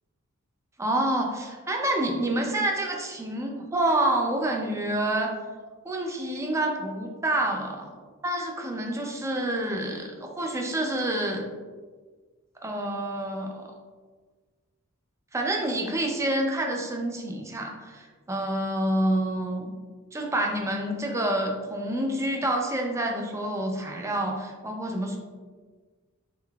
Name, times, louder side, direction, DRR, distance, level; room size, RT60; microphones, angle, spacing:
voice 1, 0.8-5.3 5.8-7.9 8.2-11.4 12.6-13.6 15.3-19.7 20.1-25.2, right 1 dB, 15° right, 2 dB, 0.4 m, -28 dB
3.7 x 3.5 x 2.3 m, 1.4 s
head